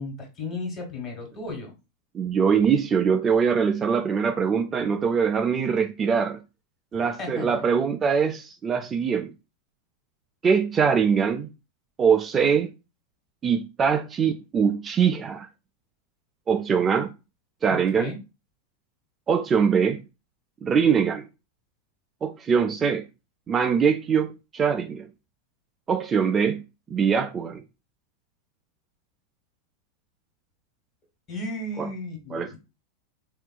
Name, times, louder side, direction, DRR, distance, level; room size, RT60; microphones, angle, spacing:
voice 1, 0.0-1.7 7.2-7.5 17.7-18.2 31.3-32.6, left 2 dB, 35° left, 1.4 m, -34 dB
voice 2, 2.1-6.4 6.9-9.3 10.4-11.5 12.0-12.7 13.4-15.5 16.5-17.1 17.6-18.1 19.3-20.0 20.6-21.2 22.2-23.0 23.5-25.1 25.9-26.6 26.9-27.6 31.8-31.9 32.3-32.6, right 6 dB, 25° right, 0.3 m, -23 dB
3.5 x 2.4 x 2.2 m
hypercardioid pair, 105°, 0 cm